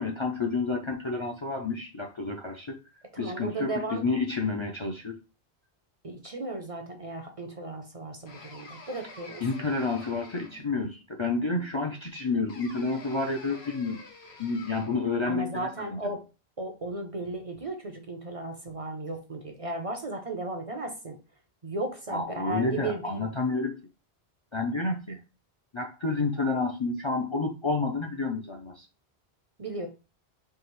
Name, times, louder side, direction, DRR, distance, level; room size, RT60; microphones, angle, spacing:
voice 1, 0.0-2.8 3.2-5.2 9.4-14.0 14.4-16.0 22.1-23.8 24.5-25.2 25.7-28.9, left 3 dB, 35° left, 2 dB, 0.5 m, -30 dB
voice 2, 3.1-4.0 6.0-9.5 15.3-16.3 16.6-21.2 21.6-23.2 29.6-29.9, right 2 dB, 40° right, 4 dB, 0.7 m, -35 dB
sound 1, 8.3-10.8 12.5-15.1, left 3 dB, 75° left, 1.2 m, -48 dB
4.7 x 2.9 x 3.1 m, 0.30 s
omnidirectional pair, 1.1 m